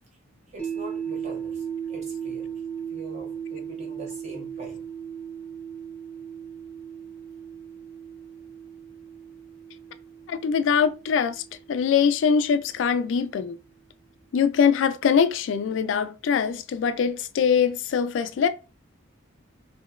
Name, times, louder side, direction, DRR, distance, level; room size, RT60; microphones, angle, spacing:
voice 1, 0.5-2.5 2.9-4.9, right 1 dB, 35° right, 0.9 m, -43 dB
sound 1, 0.6-12.7, right 8 dB, 10° left, 1.0 m, -37 dB
voice 2, 10.3-11.4 11.7-13.6 14.3-18.5, left 7 dB, 70° left, 0.3 m, -23 dB
2.9 x 2.8 x 2.4 m
head